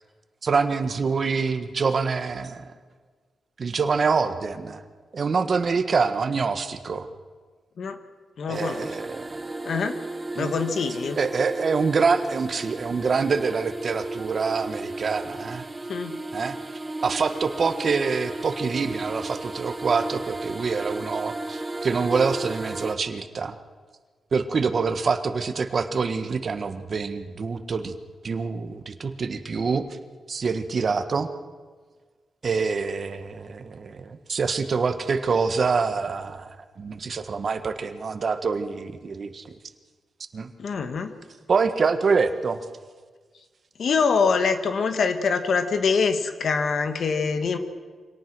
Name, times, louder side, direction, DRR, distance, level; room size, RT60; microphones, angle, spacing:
voice 1, 0.4-2.7 3.6-4.8 5.1-7.1 8.5-9.4 10.3-10.5 11.2-15.6 16.3-16.6 17.0-23.5 24.3-27.9 28.2-29.9 30.3-31.3 32.4-39.4 40.3-40.5 41.5-42.6, right 5 dB, 50° right, 8 dB, 1.4 m, -25 dB
voice 2, 8.4-8.9 9.6-10.0 10.4-11.2 15.9-16.2 40.6-41.1 43.8-47.6, left 5 dB, 65° left, 8 dB, 1.6 m, -24 dB
sound 1, 8.5-22.9, right 2 dB, 20° right, 1.2 m, -34 dB
25.5 x 18.0 x 6.2 m, 1.5 s
cardioid pair, 95°, 0 cm